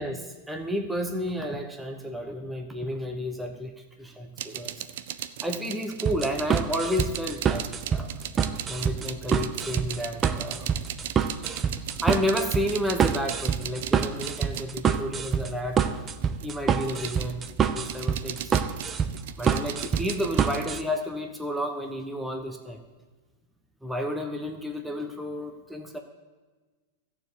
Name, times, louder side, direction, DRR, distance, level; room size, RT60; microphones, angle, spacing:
voice 1, 0.0-3.7 4.0-4.8 5.4-8.1 8.7-10.7 12.0-15.8 16.4-18.5 19.4-22.8 23.8-26.0, equal, 5° right, 3 dB, 1.2 m, -31 dB
sound 1, 4.4-15.6 16.1-20.7, right 11 dB, 65° right, 0.5 m, -37 dB
sound 2, 6.0-20.8, right 7 dB, 25° right, 0.7 m, -26 dB
13.5 x 4.8 x 8.3 m, 1.3 s
hypercardioid pair, 110°, 0 cm